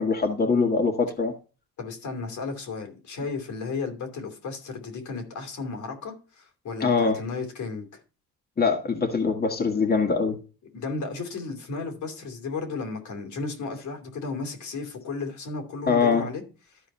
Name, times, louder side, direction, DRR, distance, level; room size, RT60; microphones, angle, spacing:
voice 1, 0.0-1.3 6.8-7.2 8.6-10.4 15.9-16.3, left 4 dB, 30° left, 2.0 m, -23 dB
voice 2, 1.8-7.9 10.7-16.4, left 4 dB, 75° left, 2.9 m, -34 dB
13.0 x 4.6 x 4.2 m
cardioid pair, 90°, 30 cm